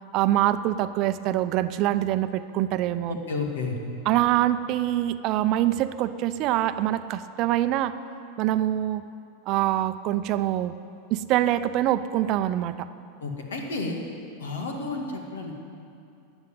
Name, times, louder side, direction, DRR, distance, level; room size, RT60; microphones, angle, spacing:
voice 1, 0.1-3.2 4.1-7.9 8.4-9.0 9.5-10.7 11.1-12.9, right 13 dB, 50° right, 12 dB, 0.6 m, -24 dB
voice 2, 3.1-3.8 13.2-14.0 14.4-15.6, left 3 dB, 80° left, 2 dB, 2.0 m, -31 dB
13.5 x 8.0 x 8.8 m, 2.5 s
hypercardioid pair, 95°, 0 cm